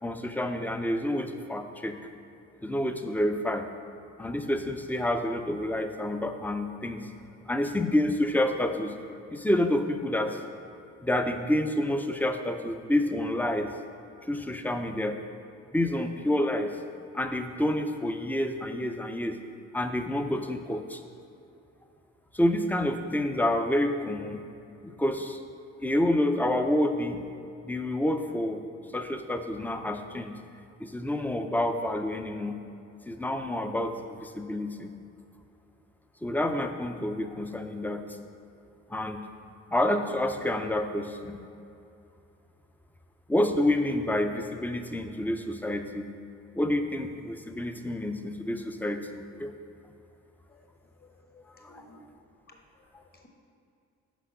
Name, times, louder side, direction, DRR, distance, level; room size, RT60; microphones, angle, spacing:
voice 1, 0.0-2.0 2.6-3.6 4.2-7.1 7.5-8.9 9.3-10.4 11.0-13.7 14.3-15.2 15.7-16.8 17.1-19.4 19.7-21.0 22.3-24.4 24.8-25.4 25.8-27.2 27.6-28.6 28.9-30.4 30.8-32.6 33.1-34.9 36.2-38.0 38.9-39.2 39.7-41.4 43.3-46.1 46.5-49.1 49.4-49.5 51.6-51.8, left 1 dB, 5° left, 6 dB, 0.5 m, -28 dB
voice 2, 51.0-52.1 52.5-52.6 53.1-53.3, left 2 dB, 30° left, 2 dB, 1.2 m, -56 dB
6.2 x 5.1 x 5.6 m, 2.7 s
cardioid pair, 90°, 30 cm